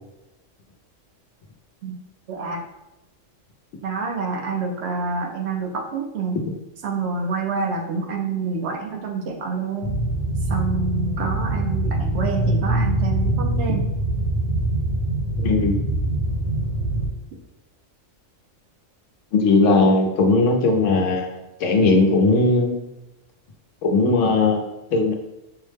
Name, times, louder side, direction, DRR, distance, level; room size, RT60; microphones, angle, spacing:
voice 1, 2.3-2.6 3.8-6.4 6.8-10.0 10.5-13.9, right 4 dB, 65° right, 2 dB, 0.8 m, -27 dB
sound 1, 9.8-17.1, right 1 dB, 60° left, 1.2 m, -23 dB
voice 2, 15.4-15.8 19.3-21.3 21.6-22.7 23.8-25.1, left 3 dB, 75° left, 3 dB, 1.0 m, -18 dB
5.5 x 2.1 x 3.3 m, 0.94 s
omnidirectional pair, 1.3 m